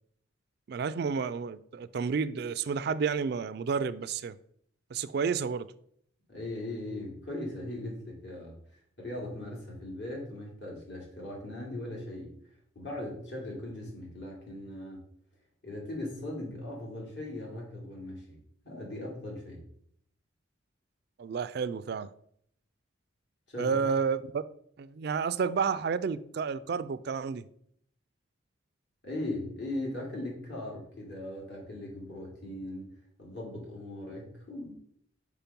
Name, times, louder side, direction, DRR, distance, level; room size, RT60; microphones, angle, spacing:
voice 1, 0.7-4.4 4.9-5.7 21.2-22.1 23.6-24.4 24.8-27.4, right 5 dB, 55° right, 0.3 m, -30 dB
voice 2, 6.3-12.3 12.7-15.0 15.6-18.4 18.6-19.6 23.5-23.8 29.0-32.9 33.2-34.7, left 1 dB, 65° left, 2.8 m, -39 dB
5.8 x 4.8 x 5.2 m
head